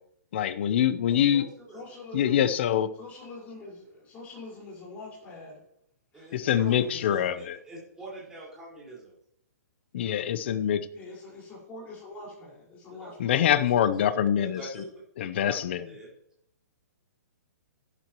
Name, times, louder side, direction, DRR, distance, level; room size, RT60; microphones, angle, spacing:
voice 1, 0.3-1.5 2.1-2.9 6.3-7.6 9.9-10.9 13.2-14.6 15.2-15.8, left 10 dB, 40° left, 13 dB, 0.8 m, -24 dB
voice 2, 1.1-1.8 6.1-9.1 12.8-13.1 13.4-15.0 15.4-16.1, right 2 dB, 5° right, -6 dB, 4.9 m, -45 dB
voice 3, 1.7-2.4 2.9-5.6 6.1-7.3 10.9-13.3, left 3 dB, 15° left, -4 dB, 5.0 m, -44 dB
13.0 x 12.0 x 3.1 m, 0.73 s
hypercardioid pair, 170°, 9 cm